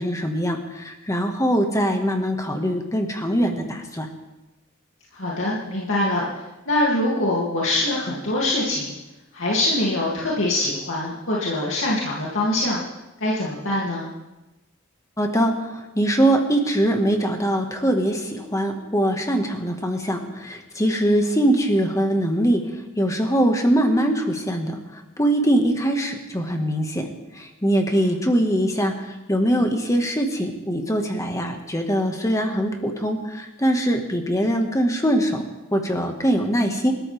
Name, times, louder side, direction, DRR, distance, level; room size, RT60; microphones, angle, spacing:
voice 1, 0.0-4.1 15.2-22.6 23.0-24.8 25.2-27.1 27.4-35.4 35.7-36.9, right 1 dB, 15° left, 4 dB, 1.8 m, -22 dB
voice 2, 5.1-8.9 9.3-12.8 13.2-14.1, left 1 dB, 70° left, -6 dB, 2.8 m, -24 dB
29.0 x 13.5 x 3.6 m, 1.0 s
head